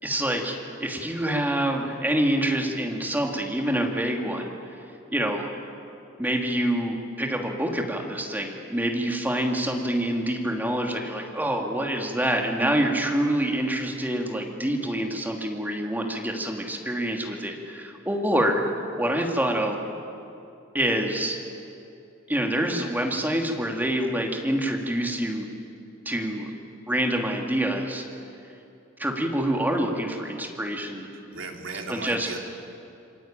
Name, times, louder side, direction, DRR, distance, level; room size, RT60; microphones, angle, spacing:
voice 1, 0.0-4.5 5.1-5.5 6.2-18.6 19.0-19.8 20.7-21.4 22.3-25.5 26.0-26.5 26.9-28.0 29.0-31.1 31.9-32.3, right 1 dB, 10° right, 1 dB, 2.8 m, -26 dB
voice 2, 31.1-32.4, right 3 dB, 80° right, 2 dB, 3.3 m, -36 dB
27.0 x 23.0 x 9.1 m, 2.7 s
head